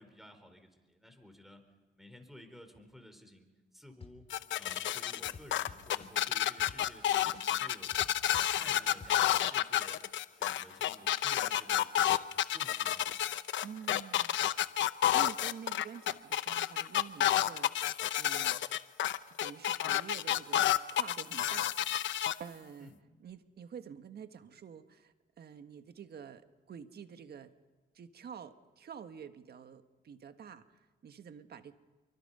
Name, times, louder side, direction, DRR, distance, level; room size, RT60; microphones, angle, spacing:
voice 1, 0.0-1.6 1.9-4.3 4.6-8.1 8.5-10.0 10.3-13.0 22.8-23.0, left 1 dB, ahead, 7 dB, 4.2 m, -55 dB
sound 1, 4.0-4.4 4.7-7.0 7.3-9.1, left 5 dB, 30° left, 3.4 m, -50 dB
sound 2, 4.3-22.3, left 12 dB, 70° left, 0.8 m, -30 dB
voice 2, 13.6-14.4 15.1-18.6 19.4-21.7 22.4-22.9 23.2-27.5 27.9-31.7, right 7 dB, 55° right, 9 dB, 1.6 m, -48 dB
28.0 x 24.0 x 5.6 m, 1.2 s
cardioid pair, 90°, 20 cm